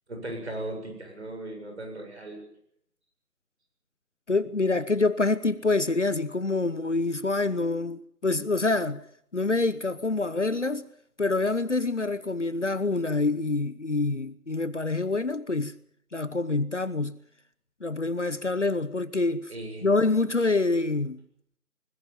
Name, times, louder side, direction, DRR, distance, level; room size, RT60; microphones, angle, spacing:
voice 1, 0.1-2.4 19.5-19.9, right 1 dB, 45° right, 7.8 m, -37 dB
voice 2, 4.3-9.0 9.3-10.8 11.2-15.7 16.1-17.2 17.8-19.5 19.8-21.2, left 3 dB, 50° left, 1.0 m, -26 dB
21.0 x 20.0 x 7.4 m
figure-of-eight pair, 170°, 47 cm